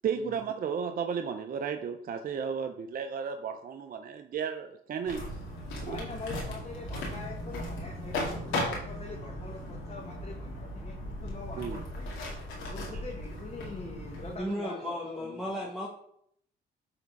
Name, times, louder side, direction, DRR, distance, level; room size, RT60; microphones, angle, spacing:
voice 1, 0.0-5.2 5.8-6.0 11.6-11.8 12.9-13.0, right 7 dB, 45° right, 6 dB, 0.5 m, -34 dB
sound 1, 5.1-14.4, left 1 dB, 85° left, 2.2 m, -37 dB
voice 2, 5.9-12.1 12.7-15.9, left 3 dB, 30° left, -1 dB, 1.2 m, -44 dB
voice 3, 14.4-15.9, equal, ahead, -4 dB, 1.3 m, -34 dB
7.9 x 3.6 x 4.5 m, 0.69 s
cardioid pair, 90°, 20 cm